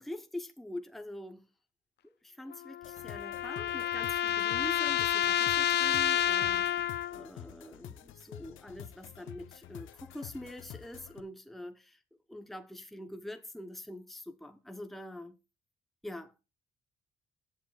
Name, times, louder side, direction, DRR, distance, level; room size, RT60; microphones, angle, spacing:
voice 1, 0.0-1.5 2.0-6.7 7.1-12.0 12.3-15.4 16.0-16.3, left 1 dB, ahead, 1.0 m, -44 dB
sound 1, 2.5-7.3, left 11 dB, 60° left, 0.6 m, -29 dB
sound 2, 2.8-11.2, left 10 dB, 80° left, 0.9 m, -49 dB
21.0 x 7.3 x 2.4 m
cardioid pair, 90°, 20 cm